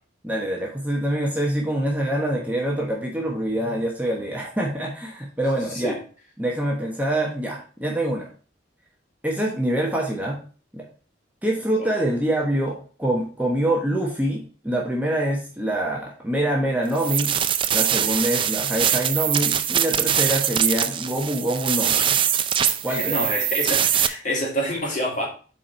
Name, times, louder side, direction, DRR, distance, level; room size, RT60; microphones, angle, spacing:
voice 1, 0.2-5.9 6.4-8.3 9.2-10.4 10.7-10.8 11.4-17.3 17.7-22.2 22.8-23.2, right 1 dB, 10° right, -2 dB, 1.1 m, -25 dB
sound 1, 16.9-24.1, right 9 dB, 25° right, 0.4 m, -22 dB
voice 2, 22.9-25.3, equal, 40° left, -2 dB, 2.5 m, -27 dB
7.4 x 4.4 x 4.4 m, 0.39 s
head